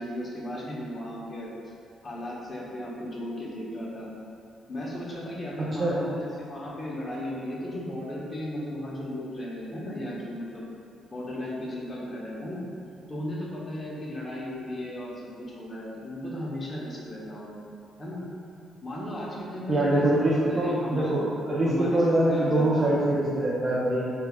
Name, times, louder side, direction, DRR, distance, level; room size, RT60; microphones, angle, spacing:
voice 1, 0.0-1.7 2.0-4.1 4.7-10.6 11.1-12.6 13.1-15.1 15.6-17.6 18.0-18.2 18.8-20.0 20.4-21.1 21.6-22.9, left 1 dB, 30° left, -5 dB, 0.9 m, -35 dB
voice 2, 19.7-24.1, right 1 dB, 30° right, -7 dB, 0.5 m, -24 dB
5.4 x 2.2 x 2.3 m, 2.4 s
cardioid pair, 90°, 0 cm